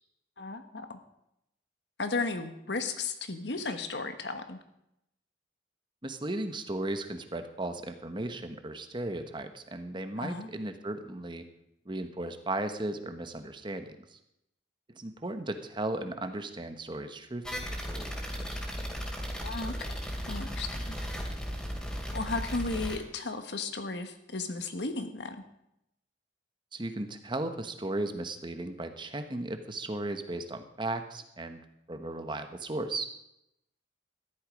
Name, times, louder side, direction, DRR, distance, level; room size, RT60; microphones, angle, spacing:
voice 1, 0.4-1.0 2.0-4.6 10.2-10.5 19.4-19.9 20.3-21.0 22.1-25.4, left 3 dB, 75° left, 8 dB, 1.4 m, -35 dB
voice 2, 6.0-11.5 11.8-14.2 14.9-17.4 17.9-18.1 26.7-31.6 31.9-33.0, right 2 dB, 25° right, 8 dB, 1.1 m, -36 dB
sound 1, 17.4-23.0, equal, 5° left, 2.8 m, -36 dB
14.0 x 11.5 x 5.2 m, 0.81 s
head